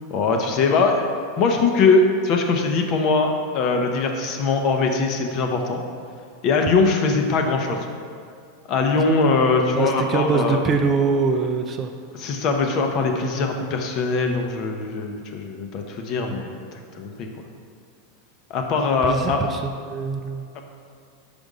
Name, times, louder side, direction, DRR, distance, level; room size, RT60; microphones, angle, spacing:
voice 1, 0.1-1.1 1.4-5.8 6.4-7.8 8.7-10.6 12.2-16.5 17.0-17.3 18.5-19.4 20.5-20.6, left 4 dB, 40° left, 3 dB, 0.7 m, -21 dB
voice 2, 9.7-11.9 19.0-20.5, right 4 dB, 25° right, 5 dB, 0.4 m, -23 dB
5.2 x 5.1 x 4.8 m, 2.4 s
supercardioid pair, 145°, 0 cm